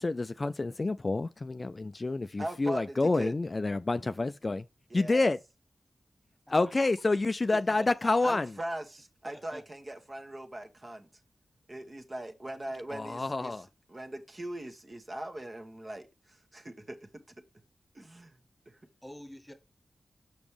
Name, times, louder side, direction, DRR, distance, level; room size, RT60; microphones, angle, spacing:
voice 1, 0.0-4.6 4.9-5.4 6.5-8.5 12.9-13.7, left 3 dB, 45° left, 0.3 m, -28 dB
voice 2, 2.4-3.3 4.9-5.3 8.2-11.1 11.7-17.0 17.9-18.3 18.7-18.8, right 1 dB, 40° right, 1.4 m, -40 dB
voice 3, 7.5-8.2 9.2-9.6 19.0-19.5, equal, 10° left, 1.6 m, -46 dB
6.0 x 5.2 x 3.3 m
cardioid pair, 40°, 0 cm